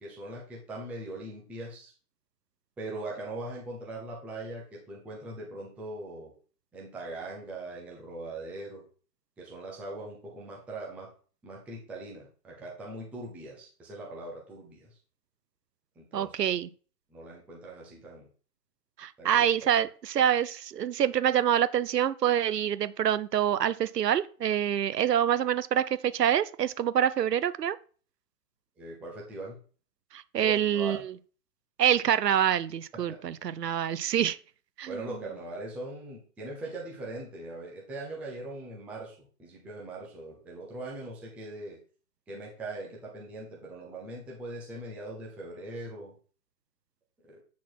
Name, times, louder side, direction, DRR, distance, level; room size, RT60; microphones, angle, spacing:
voice 1, 0.0-1.9 2.8-6.3 6.7-8.8 9.4-11.1 11.4-14.9 16.0-16.3 17.1-18.3 19.2-19.7 28.8-29.6 30.4-31.0 33.1-33.2 34.9-41.8 42.3-46.1 47.2-47.4, right 2 dB, 5° right, 0.6 m, -41 dB
voice 2, 16.1-16.7 19.0-27.8 30.1-31.1 31.8-34.4 34.8-35.1, right 10 dB, 85° right, 0.8 m, -26 dB
8.5 x 4.2 x 4.5 m
hypercardioid pair, 145°, 47 cm